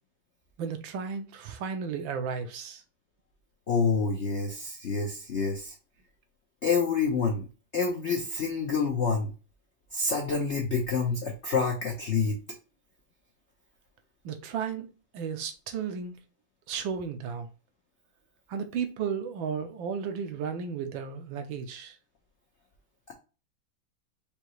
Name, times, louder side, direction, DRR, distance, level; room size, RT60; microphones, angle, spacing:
voice 1, 0.6-2.8 14.2-16.1 16.7-17.5 18.5-22.0, right 6 dB, 75° right, 1.5 m, -34 dB
voice 2, 3.7-5.7 6.6-7.4 7.7-9.3 9.9-12.3, left 5 dB, 70° left, 0.6 m, -27 dB
5.1 x 2.8 x 3.0 m
omnidirectional pair, 2.2 m